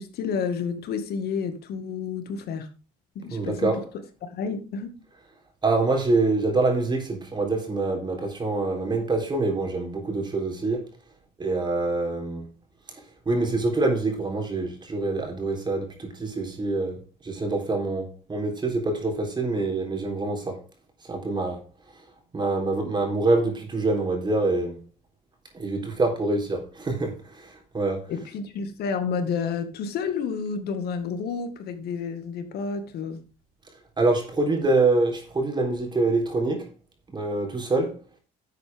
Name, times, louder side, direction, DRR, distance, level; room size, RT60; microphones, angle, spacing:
voice 1, 0.0-2.7 3.2-3.8 4.2-4.9 28.1-33.2, left 5 dB, 70° left, 2.1 m, -30 dB
voice 2, 3.3-3.9 5.6-10.9 11.4-12.5 12.9-20.6 21.1-21.6 22.3-24.8 25.5-28.1 34.0-36.7 37.1-38.0, right 3 dB, 25° right, 3.7 m, -25 dB
11.0 x 8.0 x 3.7 m
cardioid pair, 110°, 17 cm